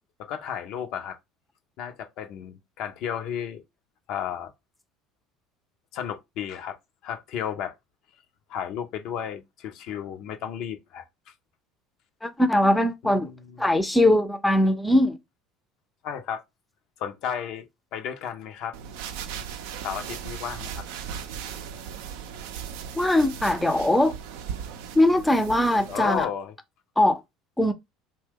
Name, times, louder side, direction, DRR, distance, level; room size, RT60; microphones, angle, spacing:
voice 1, 0.2-1.2 1.8-3.6 4.1-4.5 5.9-6.8 7.0-7.8 8.5-11.0 13.0-13.6 16.0-16.4 17.0-17.7 17.9-18.8 19.8-20.8 25.9-26.5, left 8 dB, 60° left, 0.5 m, -33 dB
voice 2, 12.2-13.3 13.6-15.2 23.0-24.1 25.0-26.3 27.0-27.2 27.6-27.7, left 1 dB, 5° left, 0.5 m, -21 dB
sound 1, 18.7-26.2, right 8 dB, 75° right, 0.4 m, -37 dB
2.8 x 2.2 x 3.4 m
hypercardioid pair, 70°, 0 cm